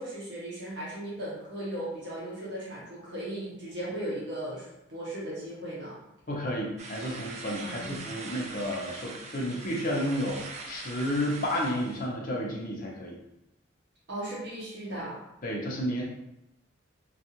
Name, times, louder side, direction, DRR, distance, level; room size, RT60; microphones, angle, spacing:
voice 1, 0.0-6.0 7.6-8.1 14.1-15.2, right 1 dB, 55° right, -7 dB, 0.8 m, -37 dB
voice 2, 6.3-13.2 15.4-16.0, equal, 45° left, -2 dB, 0.6 m, -31 dB
sound 1, 6.8-12.1, right 3 dB, 35° right, 0.3 m, -42 dB
2.6 x 2.3 x 2.8 m, 0.87 s
head